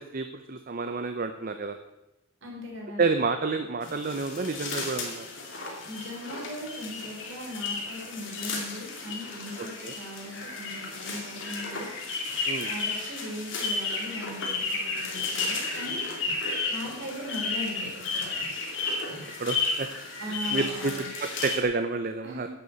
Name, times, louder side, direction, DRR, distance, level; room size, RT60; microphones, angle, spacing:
voice 1, 0.0-1.8 3.0-5.3 9.8-10.0 12.5-12.7 19.4-19.9 20.5-20.9 21.2-22.5, right 4 dB, 40° right, 8 dB, 0.6 m, -29 dB
voice 2, 2.4-3.0 5.9-11.9 12.6-16.2 16.7-18.3 20.2-21.1 22.2-22.5, left 1 dB, 60° right, -1 dB, 3.7 m, -39 dB
sound 1, 3.8-21.6, left 3 dB, 60° left, 2.5 m, -33 dB
10.5 x 6.8 x 8.0 m, 0.96 s
head